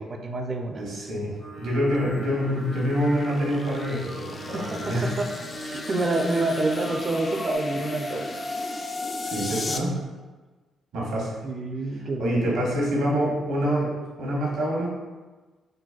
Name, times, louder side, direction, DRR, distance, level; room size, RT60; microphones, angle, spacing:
voice 1, 0.0-0.9 4.5-5.3 5.6-8.3 9.5-9.6 11.4-12.7, right 2 dB, 40° right, 4 dB, 0.4 m, -28 dB
voice 2, 0.8-5.1 9.2-10.0 10.9-11.3 12.2-14.9, equal, 75° right, -4 dB, 0.9 m, -26 dB
Singing, 1.4-7.6, equal, 60° left, 0.8 m, -39 dB
sound 1, 2.0-9.8, left 2 dB, 35° left, 0.3 m, -36 dB
3.9 x 2.1 x 2.4 m, 1.3 s
supercardioid pair, 55°, 0 cm